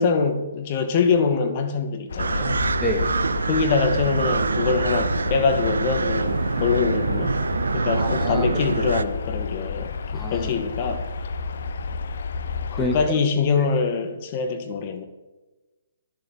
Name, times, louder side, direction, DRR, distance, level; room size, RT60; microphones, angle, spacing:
voice 1, 0.0-2.6 3.5-7.4 7.7-11.1 12.7-15.0, left 5 dB, 40° left, 6 dB, 1.8 m, -24 dB
sound 1, 2.1-13.1, left 5 dB, 65° left, 0.9 m, -31 dB
sound 2, 2.2-9.0, right 4 dB, 80° right, 0.5 m, -25 dB
voice 2, 2.8-3.2 7.9-8.5 10.1-10.5 12.8-13.0 13.6-13.7, equal, 5° left, 2 dB, 1.9 m, -28 dB
11.0 x 7.3 x 7.8 m, 1.2 s
figure-of-eight pair, 135°, 0 cm